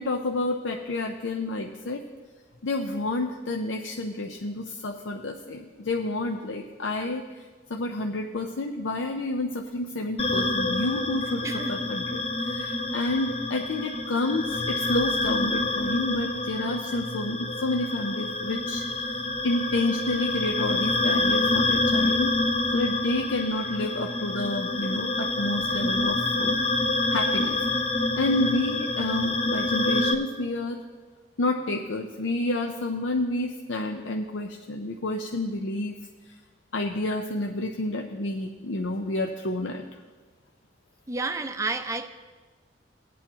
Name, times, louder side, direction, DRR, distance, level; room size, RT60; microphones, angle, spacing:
voice 1, 0.0-2.0 2.6-22.3 22.7-26.6 27.1-27.6 28.0-30.8 31.4-36.0 36.7-39.8, left 2 dB, 80° left, 3 dB, 0.6 m, -30 dB
sound 1, 10.2-30.1, left 2 dB, 30° left, 0.6 m, -27 dB
voice 2, 11.4-11.9 41.1-42.1, right 3 dB, 15° right, 8 dB, 0.5 m, -31 dB
19.5 x 8.5 x 2.9 m, 1.4 s
head